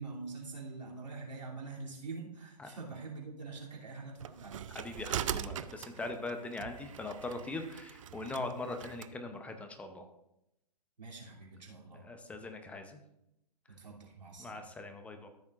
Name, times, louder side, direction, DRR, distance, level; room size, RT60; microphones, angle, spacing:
voice 1, 0.0-4.7 11.0-12.1 13.7-14.6, right 3 dB, 85° right, -3 dB, 2.9 m, -45 dB
sound 1, 4.2-9.1, right 10 dB, 50° right, 0.4 m, -41 dB
voice 2, 4.7-10.1 12.0-13.0 14.4-15.3, left 2 dB, 5° left, 6 dB, 0.7 m, -41 dB
13.5 x 7.1 x 2.5 m, 0.84 s
hypercardioid pair, 135°, 21 cm